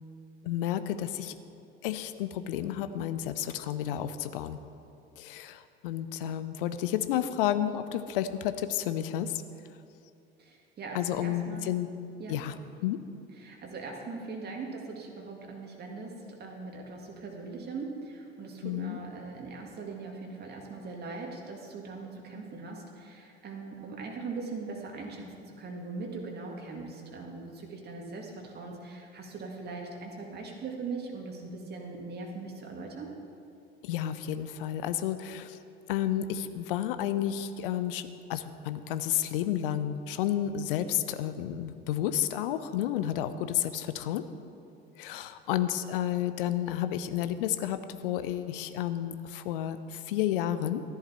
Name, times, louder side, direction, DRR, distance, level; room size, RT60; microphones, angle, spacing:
voice 1, 0.4-1.4 1.8-4.6 5.2-9.4 10.9-11.9 12.3-12.5 12.8-13.0 18.6-19.0 33.8-35.6 35.9-44.2 45.0-50.8, left 11 dB, 60° left, 12 dB, 0.7 m, -31 dB
voice 2, 10.4-11.7 12.2-12.4 13.4-25.3 25.6-33.2, right 3 dB, 30° right, 0 dB, 2.0 m, -40 dB
13.5 x 11.0 x 4.3 m, 2.6 s
figure-of-eight pair, 65°, 31 cm